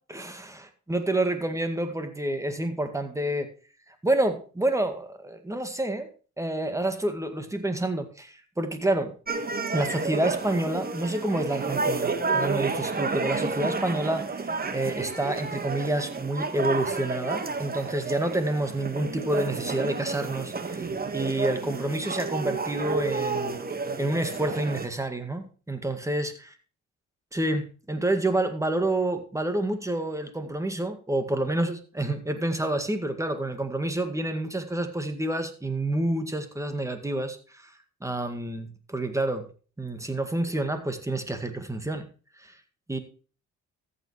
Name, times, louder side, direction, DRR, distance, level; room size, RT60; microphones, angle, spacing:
voice 1, 0.1-3.5 4.0-6.1 6.4-9.1 9.7-14.4 14.7-20.9 21.1-23.6 24.0-26.3 27.3-37.7 38.0-39.5 39.8-42.1 42.4-42.5 42.9-43.0, right 1 dB, 10° right, 8 dB, 1.9 m, -28 dB
sound 1, 9.3-24.9, right 4 dB, 30° right, 1.5 m, -31 dB
14.0 x 8.3 x 3.2 m, 0.37 s
cardioid pair, 90°, 30 cm